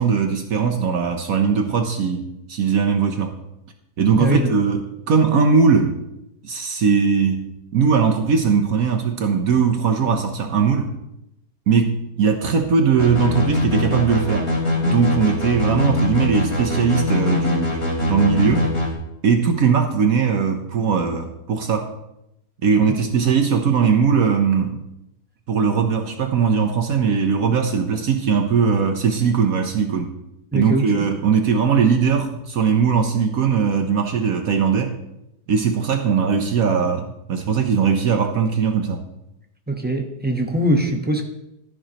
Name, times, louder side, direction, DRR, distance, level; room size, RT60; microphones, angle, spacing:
voice 1, 0.0-3.4 4.0-4.8 5.1-5.9 6.4-10.9 11.7-14.5 14.8-18.7 19.2-21.9 22.6-24.8 25.5-30.1 30.5-34.9 35.5-39.0, right 6 dB, 60° right, 5 dB, 1.2 m, -19 dB
voice 2, 4.2-4.5 22.9-23.0 30.5-31.0 39.7-41.2, right 1 dB, 10° right, 2 dB, 0.8 m, -22 dB
sound 1, 13.0-18.9, left 2 dB, 40° left, 3.1 m, -22 dB
13.5 x 11.0 x 3.0 m, 0.85 s
omnidirectional pair, 1.8 m